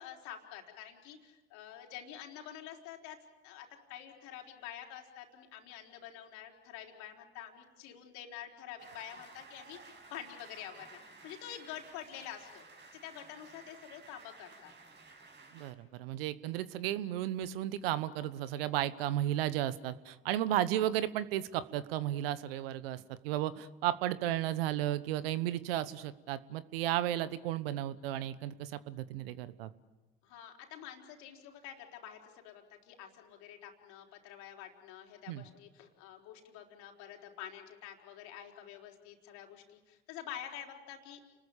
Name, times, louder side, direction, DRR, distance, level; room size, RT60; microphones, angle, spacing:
voice 1, 0.0-3.2 3.4-9.8 10.1-12.7 12.9-14.7 30.2-41.2, left 10 dB, 70° left, 2 dB, 4.2 m, -48 dB
sound 1, 8.8-15.7, right 3 dB, 35° right, 5.8 m, -55 dB
voice 2, 15.5-29.7 35.3-35.4, right 12 dB, 75° right, 16 dB, 1.2 m, -34 dB
30.0 x 21.0 x 7.3 m, 1.1 s
hypercardioid pair, 65°, 30 cm